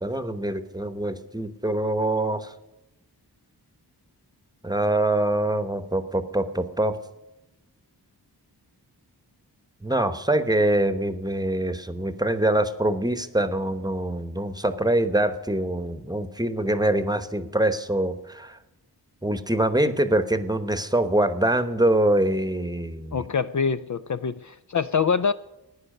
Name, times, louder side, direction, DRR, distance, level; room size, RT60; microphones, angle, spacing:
voice 1, 0.0-2.5 4.6-7.0 9.8-18.6 19.2-23.2, right 1 dB, 10° right, 11 dB, 1.0 m, -24 dB
voice 2, 23.1-25.3, left 6 dB, 50° left, 12 dB, 0.5 m, -25 dB
15.0 x 9.9 x 6.5 m, 0.95 s
wide cardioid pair, 95°, 40 cm